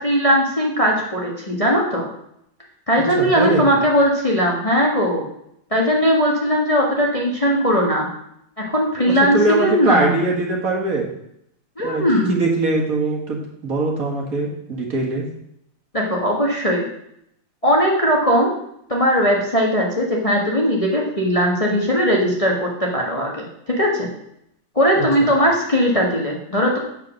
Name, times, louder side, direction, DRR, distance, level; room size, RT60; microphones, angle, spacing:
voice 1, 0.0-2.1 2.9-5.3 5.7-8.1 8.6-10.1 11.8-12.4 15.9-16.8 17.6-18.5 18.9-23.4 23.8-24.1 24.7-26.8, equal, 20° left, -2 dB, 1.5 m, -19 dB
voice 2, 3.2-3.6 9.0-11.1 11.8-15.3 25.0-25.1, right 2 dB, 50° right, -1 dB, 2.1 m, -22 dB
8.5 x 6.9 x 6.4 m, 0.76 s
omnidirectional pair, 2.0 m